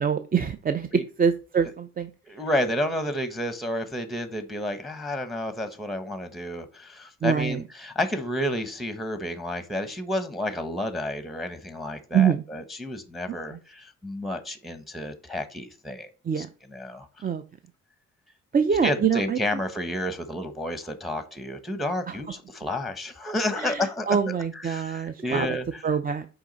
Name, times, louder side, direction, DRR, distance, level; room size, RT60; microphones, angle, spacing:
voice 1, 0.0-0.9 1.2-2.1 7.2-7.6 12.1-12.4 16.3-16.5 17.2-17.4 18.5-19.4 23.6-25.5 25.8-26.3, right 7 dB, 30° right, 0.5 m, -24 dB
voice 2, 2.3-16.1 16.3-17.1 18.8-25.8, left 1 dB, ahead, 1.0 m, -31 dB
6.0 x 4.8 x 4.0 m
cardioid pair, 90°, 30 cm